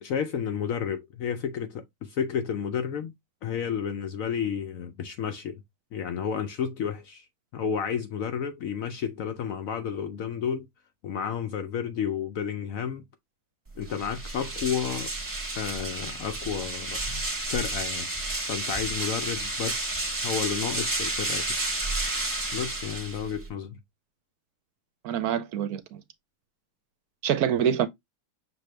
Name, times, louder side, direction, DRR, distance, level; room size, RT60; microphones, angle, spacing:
voice 1, 0.0-3.1 3.4-5.6 5.9-7.2 7.5-10.7 11.0-13.0 13.8-15.1 15.5-17.2 17.5-18.1 18.5-20.0 20.2-21.5 22.5-23.8, left 7 dB, 70° left, 0.8 m, -31 dB
sound 1, 13.8-23.5, right 2 dB, 15° right, 0.9 m, -31 dB
voice 2, 25.0-26.0 27.2-27.9, right 9 dB, 70° right, 1.0 m, -26 dB
6.2 x 2.7 x 3.2 m
omnidirectional pair, 1.8 m